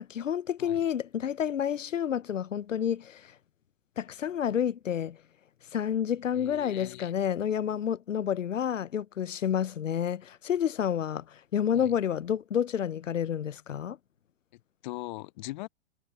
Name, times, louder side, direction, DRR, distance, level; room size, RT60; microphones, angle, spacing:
voice 1, 0.0-3.3 4.0-5.2 5.7-14.0, left 9 dB, 85° left, 0.6 m, -29 dB
voice 2, 6.3-7.1 11.7-11.9 14.5-15.7, left 20 dB, 40° left, 0.7 m, -41 dB
hypercardioid pair, 115°, 37 cm